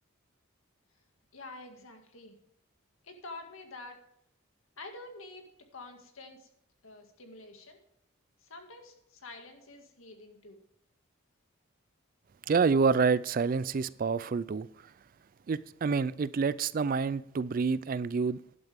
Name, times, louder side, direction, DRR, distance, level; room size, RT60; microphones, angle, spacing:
voice 1, 1.3-2.4 3.0-4.0 4.8-5.5 5.7-6.5 6.8-7.8 8.4-10.6, left 2 dB, 75° left, 2.0 m, -47 dB
voice 2, 12.5-14.7 15.5-18.4, right 5 dB, 40° right, 0.3 m, -28 dB
12.0 x 11.0 x 3.5 m
head